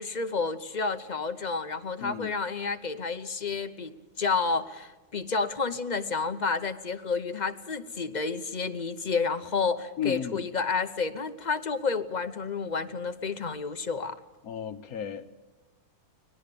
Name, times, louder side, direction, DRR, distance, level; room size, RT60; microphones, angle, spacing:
voice 1, 0.0-14.2, left 4 dB, 35° left, 0.8 m, -30 dB
voice 2, 2.0-2.3 10.0-10.4 14.4-15.4, left 8 dB, 70° left, 1.4 m, -34 dB
24.5 x 19.0 x 6.9 m
omnidirectional pair, 1.6 m